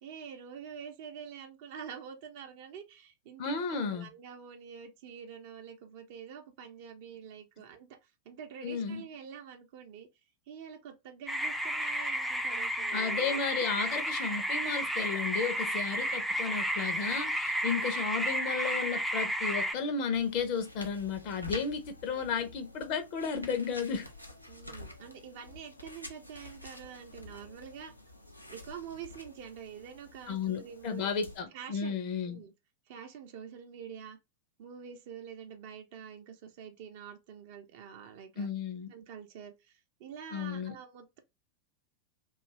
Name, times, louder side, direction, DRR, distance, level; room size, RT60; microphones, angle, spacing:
voice 1, 0.0-10.1 10.5-13.4 16.5-16.6 22.1-22.2 24.5-27.9 28.5-31.1 31.5-32.0 32.3-32.5 32.9-34.2 34.6-38.5 38.9-41.2, right 7 dB, 50° right, 0.6 m, -46 dB
voice 2, 3.4-4.1 8.6-9.0 12.9-24.1 30.3-32.4 38.4-38.9 40.3-40.8, left 6 dB, 45° left, 0.6 m, -33 dB
sound 1, 11.3-19.7, equal, ahead, 0.4 m, -32 dB
sound 2, 20.1-31.4, left 1 dB, 90° left, 0.5 m, -49 dB
2.6 x 2.4 x 3.0 m
figure-of-eight pair, 90°, 0 cm